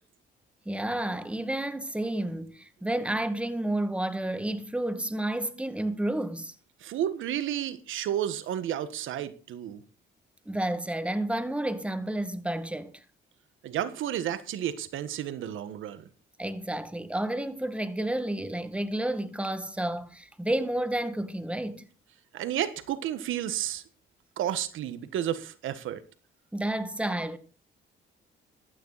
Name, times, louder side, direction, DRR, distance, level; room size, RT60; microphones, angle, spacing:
voice 1, 0.7-6.5 10.5-13.0 16.4-21.8 26.5-27.4, right 1 dB, 5° right, 1.9 m, -31 dB
voice 2, 6.8-9.8 13.6-16.1 22.3-23.8 24.4-26.0, right 11 dB, 80° right, 1.5 m, -31 dB
16.0 x 12.5 x 4.1 m
cardioid pair, 90°, 20 cm